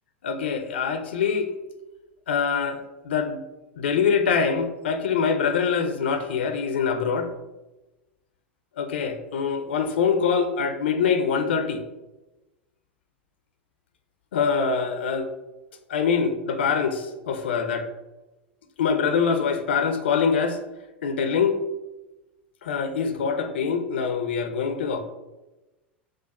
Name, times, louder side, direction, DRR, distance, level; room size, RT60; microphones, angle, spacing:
voice 1, 0.2-1.5 2.3-3.4 3.8-7.3 8.8-11.8 14.3-15.3 15.9-17.9 18.8-20.6 21.0-21.6 22.6-25.0, left 6 dB, 75° left, 8 dB, 0.4 m, -24 dB
4.9 x 2.3 x 4.0 m, 1.1 s
hypercardioid pair, 85°, 6 cm